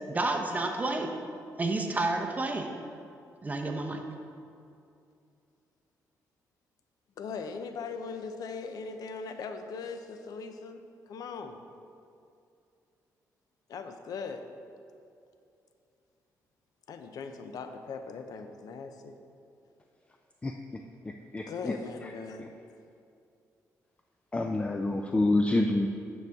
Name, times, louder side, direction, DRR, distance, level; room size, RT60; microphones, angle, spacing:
voice 1, 0.1-1.1 1.6-2.7 3.4-4.0, right 2 dB, 25° right, 3 dB, 0.8 m, -30 dB
voice 2, 7.2-10.8 11.1-11.6 13.7-14.5 16.9-19.2 21.5-22.5, left 5 dB, 70° left, 7 dB, 0.6 m, -39 dB
voice 3, 21.0-21.7 22.4-22.5 24.3-25.9, left 2 dB, 20° left, 4 dB, 0.4 m, -27 dB
9.2 x 6.3 x 3.5 m, 2.5 s
cardioid pair, 95°, 7 cm